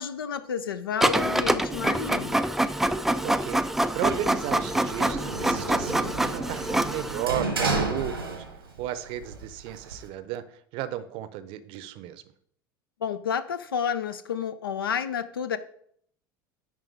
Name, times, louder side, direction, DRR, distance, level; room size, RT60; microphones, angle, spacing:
voice 1, 0.0-2.4 13.0-15.6, left 7 dB, 75° left, 0.5 m, -30 dB
Printer, 1.0-7.3, right 1 dB, 5° right, 0.3 m, -26 dB
voice 2, 3.2-3.6 3.9-8.4 8.8-10.4 10.7-12.2, right 11 dB, 45° right, 0.7 m, -34 dB
Sliding door, 4.0-8.8 9.1-10.1, right 3 dB, 85° right, 1.2 m, -32 dB
10.5 x 3.7 x 4.6 m
figure-of-eight pair, 75°, 12 cm